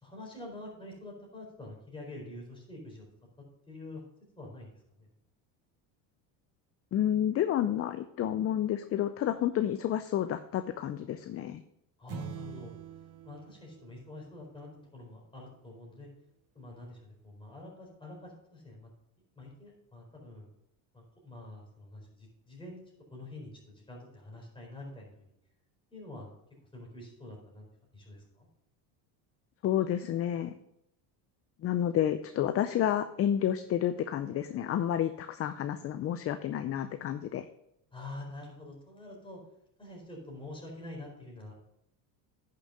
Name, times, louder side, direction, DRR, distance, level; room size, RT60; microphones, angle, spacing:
voice 1, 0.0-3.1 3.7-4.0 4.4-5.1 12.0-12.7 13.2-16.1 16.5-18.9 19.4-20.5 20.9-25.3 25.9-26.3 26.7-27.7 27.9-28.5 37.9-39.4 39.8-41.5, left 2 dB, 10° left, -2 dB, 4.3 m, -46 dB
voice 2, 6.9-11.6 29.6-30.5 31.6-37.5, left 10 dB, 30° left, 11 dB, 0.4 m, -30 dB
sound 1, 12.1-14.7, right 11 dB, 35° right, 0.6 m, -45 dB
9.9 x 6.7 x 5.0 m, 0.77 s
supercardioid pair, 110°, 48 cm